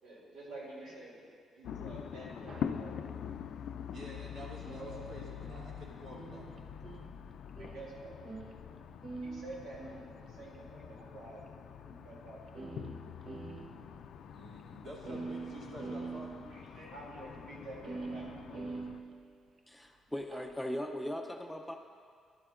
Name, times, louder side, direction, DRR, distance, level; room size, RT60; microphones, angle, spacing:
voice 1, 0.0-1.2 1.6-3.3 4.7-5.0 7.6-8.2 8.7-8.8 9.2-12.5 16.5-18.7, right 2 dB, 90° right, -5 dB, 2.7 m, -49 dB
sound 1, 1.6-19.0, left 8 dB, 70° left, 0.3 m, -45 dB
sound 2, 2.5-2.8 4.7-8.8 9.0-10.6 11.5-11.6 12.1-12.2 12.5-14.0 14.3-14.4 14.6-14.7 15.0-16.6 17.8-19.6 20.2-20.6, right 3 dB, 50° right, 0.7 m, -45 dB
voice 2, 3.9-6.6 13.3-13.4 14.3-16.4, equal, 70° right, -5 dB, 2.5 m, -49 dB
voice 3, 19.7-21.7, equal, 5° left, 3 dB, 0.6 m, -39 dB
12.0 x 11.0 x 2.5 m, 2.1 s
cardioid pair, 90°, 0 cm